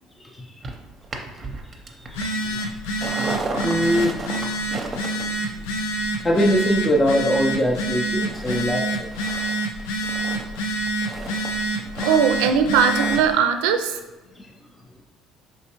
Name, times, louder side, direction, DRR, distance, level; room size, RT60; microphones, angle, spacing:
sound 1, 0.6-7.8 8.2-8.6 8.9-13.4 13.7-13.8, right 3 dB, 35° right, 0.6 m, -35 dB
voice 1, 1.9-2.2 2.5-2.6 3.6-4.2 6.2-9.1 14.4-14.5, equal, 20° left, -2 dB, 0.5 m, -22 dB
Telephone, 2.0-13.3, right 2 dB, 90° left, 0.4 m, -27 dB
voice 2, 11.9-14.0, right 7 dB, 85° right, 7 dB, 0.4 m, -19 dB
4.2 x 3.3 x 2.9 m, 1.2 s
supercardioid pair, 90°, 0 cm